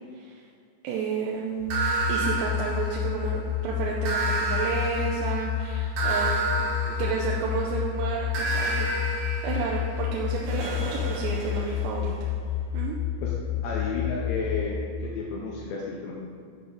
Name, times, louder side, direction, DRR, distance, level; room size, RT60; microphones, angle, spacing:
voice 1, 0.1-0.5 0.8-1.8 2.1-6.7 7.0-8.9 9.4-12.1 12.7-13.0, right 5 dB, 85° right, -2 dB, 2.8 m, -31 dB
sound 1, 1.6-14.6, left 10 dB, 65° left, 2.4 m, -30 dB
sound 2, 1.7-3.4 4.0-7.7 8.3-12.1, right 2 dB, 60° right, 2.3 m, -31 dB
voice 2, 13.6-16.1, left 4 dB, 85° left, -3 dB, 2.1 m, -32 dB
7.0 x 6.3 x 3.8 m, 2.2 s
omnidirectional pair, 4.9 m